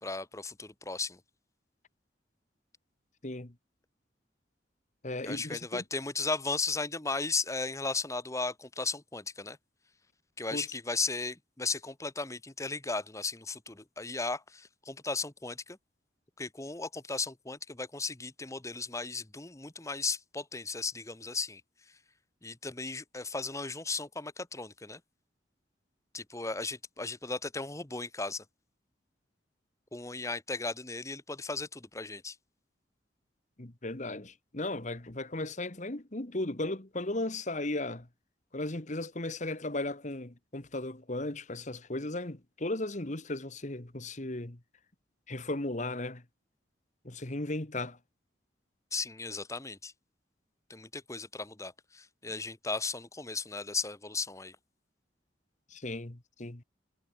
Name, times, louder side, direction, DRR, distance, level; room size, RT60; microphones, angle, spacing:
voice 1, 0.0-1.2 5.2-9.6 10.4-15.8 16.4-21.6 22.4-25.0 26.1-28.4 29.9-32.4 48.9-49.9 50.7-54.6, left 3 dB, 15° left, 1.1 m, -36 dB
voice 2, 3.2-3.5 5.0-5.8 10.5-10.6 33.6-38.1 38.5-44.6 45.3-46.2 47.0-48.0 55.7-56.6, left 2 dB, 40° left, 1.7 m, -36 dB
head